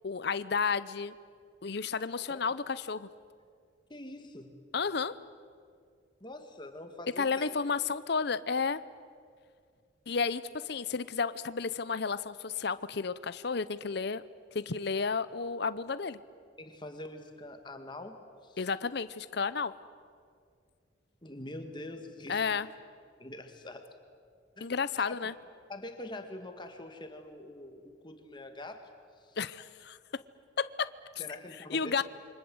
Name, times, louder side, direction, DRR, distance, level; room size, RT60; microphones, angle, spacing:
voice 1, 0.0-1.1 1.6-3.1 4.7-5.2 7.2-8.8 10.1-14.2 14.5-16.2 18.6-19.7 22.3-22.7 24.6-25.3 29.4-30.0 30.6-30.9 31.7-32.0, left 5 dB, 55° left, 15 dB, 0.7 m, -32 dB
voice 2, 3.9-4.5 6.2-7.6 16.6-18.2 18.4-18.6 21.2-22.5 23.2-23.9 24.6-24.7 25.0-25.2 25.7-28.9 29.2-29.4 31.2-32.0, left 1 dB, 25° left, 6 dB, 2.0 m, -44 dB
28.5 x 24.5 x 7.9 m, 2.2 s
head